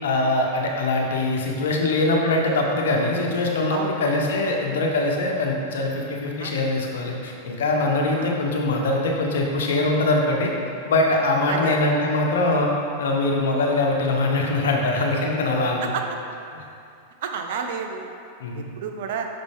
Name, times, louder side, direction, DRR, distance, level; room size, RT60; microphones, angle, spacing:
voice 1, 0.0-10.5 10.8-12.7 13.0-15.9 16.5-16.6 18.4-18.6, left 2 dB, 80° left, 0 dB, 1.0 m, -22 dB
voice 2, 11.5-11.8 15.8-16.0 17.2-18.1 18.5-19.3, right 7 dB, 70° right, 4 dB, 0.6 m, -30 dB
5.9 x 5.3 x 3.6 m, 2.5 s
hypercardioid pair, 115°, 0 cm